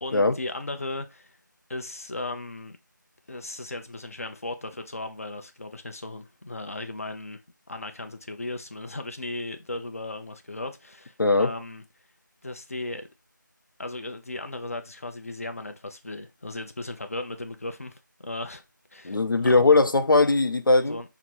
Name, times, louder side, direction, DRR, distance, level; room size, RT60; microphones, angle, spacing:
voice 1, 0.0-1.3 1.7-2.8 3.3-7.4 7.7-11.8 12.4-13.1 13.8-18.6 18.9-19.6 20.8-21.2, left 2 dB, 45° left, 0.6 m, -36 dB
voice 2, 11.2-11.5 19.0-21.0, left 3 dB, 90° left, 0.6 m, -20 dB
5.9 x 2.0 x 4.4 m
figure-of-eight pair, 170°, 11 cm